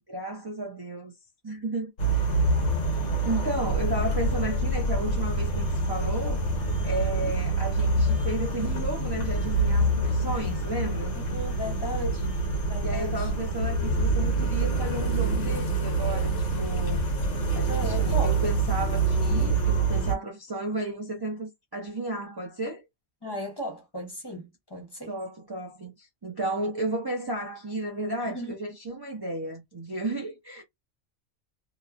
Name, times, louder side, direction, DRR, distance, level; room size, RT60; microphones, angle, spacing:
voice 1, 0.1-1.1 1.4-2.2 3.3-6.5 6.8-11.2 12.8-17.0 17.5-22.8 25.1-30.6, right 2 dB, 30° right, 0.4 m, -33 dB
sound 1, 2.0-20.2, right 2 dB, 85° left, 1.3 m, -26 dB
voice 2, 6.8-7.3 11.1-13.3 17.7-18.4 23.2-25.1 28.2-28.6, left 1 dB, 25° left, 0.8 m, -36 dB
3.0 x 2.1 x 2.4 m
omnidirectional pair, 1.3 m